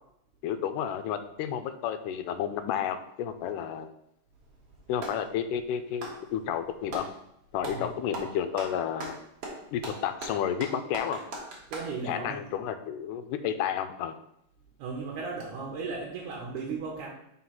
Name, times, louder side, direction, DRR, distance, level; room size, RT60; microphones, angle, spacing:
voice 1, 0.4-3.9 4.9-7.1 7.5-9.2 9.7-11.2 12.1-14.2, left 9 dB, 85° left, 9 dB, 2.1 m, -31 dB
Clapping, 4.3-5.3 5.9-7.1 7.6-7.9 8.1-11.9, right 2 dB, 55° right, 2.0 m, -39 dB
voice 2, 11.7-12.4 14.8-17.1, right 4 dB, 75° right, -3 dB, 2.5 m, -36 dB
5.5 x 3.9 x 5.8 m, 0.77 s
omnidirectional pair, 3.7 m